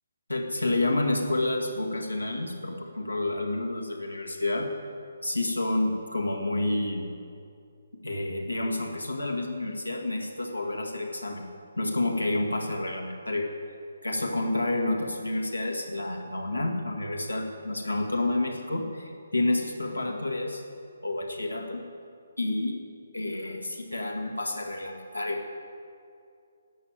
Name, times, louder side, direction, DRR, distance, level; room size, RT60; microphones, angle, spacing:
voice 1, 0.3-4.7 5.2-7.1 8.0-11.5 11.8-13.5 14.0-20.6 21.0-21.8 22.4-22.8 23.1-25.5, left 2 dB, 85° left, 1 dB, 1.9 m, -29 dB
11.5 x 7.7 x 9.1 m, 2.4 s
figure-of-eight pair, 140°, 0 cm